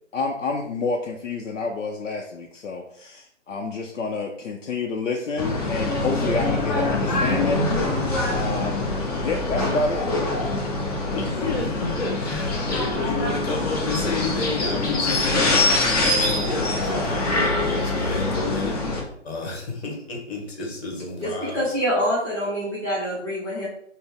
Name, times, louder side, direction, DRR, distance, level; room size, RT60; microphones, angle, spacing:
voice 1, 0.1-7.7 7.9-8.0 8.3-8.9 9.2-10.2, left 3 dB, 90° left, 2 dB, 0.6 m, -28 dB
sound 1, 5.4-19.0, left 2 dB, 30° left, 0.8 m, -24 dB
voice 2, 11.1-18.9 19.2-21.7, left 2 dB, 55° left, 1 dB, 1.4 m, -30 dB
voice 3, 21.2-23.7, equal, 5° left, -9 dB, 0.6 m, -25 dB
4.1 x 2.0 x 3.4 m, 0.69 s
hypercardioid pair, 150°, 37 cm